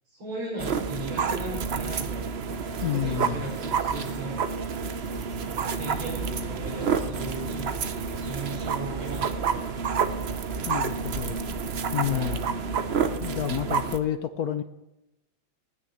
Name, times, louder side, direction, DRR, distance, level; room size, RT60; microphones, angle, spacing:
voice 1, 0.1-2.3 2.8-4.4 5.5-7.9 8.2-9.9 12.1-12.4, right 2 dB, 85° right, -7 dB, 6.2 m, -37 dB
sound 1, 0.6-14.0, right 6 dB, 55° right, 0.7 m, -29 dB
sound 2, 2.5-12.9, right 2 dB, 35° right, 3.1 m, -52 dB
voice 2, 2.8-3.5 10.7-11.4 11.9-12.4 13.2-14.6, left 11 dB, 65° left, 10 dB, 1.0 m, -29 dB
sound 3, 6.2-12.0, equal, 30° left, 2.5 m, -47 dB
18.5 x 6.6 x 8.7 m, 0.91 s
omnidirectional pair, 2.1 m